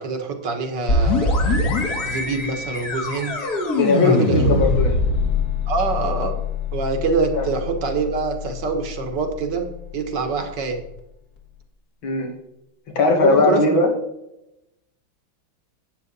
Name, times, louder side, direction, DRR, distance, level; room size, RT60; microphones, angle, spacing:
voice 1, 0.0-1.6 2.1-3.4 4.0-4.5 5.7-6.4 6.7-9.7 9.9-10.8 13.2-13.8, right 4 dB, 60° right, 5 dB, 2.0 m, -25 dB
sound 1, 0.9-10.4, left 3 dB, 50° left, 2.2 m, -24 dB
voice 2, 3.8-5.0 7.3-7.4 12.0-12.3 13.0-13.9, left 3 dB, 75° left, 3 dB, 2.6 m, -18 dB
11.0 x 8.7 x 4.0 m, 0.87 s
omnidirectional pair, 2.2 m